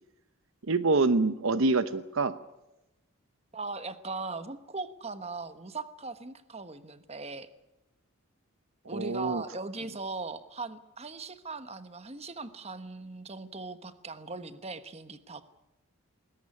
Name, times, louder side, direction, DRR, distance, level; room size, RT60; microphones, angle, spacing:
voice 1, 0.7-2.4 8.9-9.4, right 3 dB, 65° right, 12 dB, 0.9 m, -26 dB
voice 2, 3.5-7.5 8.9-15.4, right 3 dB, 30° right, 11 dB, 1.2 m, -39 dB
20.5 x 18.5 x 9.8 m, 0.95 s
head